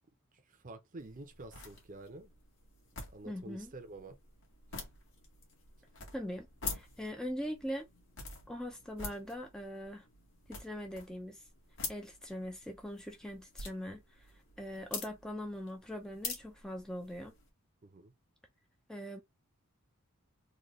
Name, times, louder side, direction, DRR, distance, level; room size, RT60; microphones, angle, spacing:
voice 1, 0.3-2.3 3.1-4.2 17.8-18.1, right 2 dB, 40° right, 0.7 m, -49 dB
sound 1, 1.0-17.5, left 4 dB, 60° left, 1.7 m, -47 dB
voice 2, 3.3-3.7 6.1-7.9 8.5-10.1 10.5-11.5 11.9-14.3 14.6-17.3 18.9-19.2, equal, 5° left, 0.5 m, -41 dB
3.9 x 2.4 x 3.0 m
head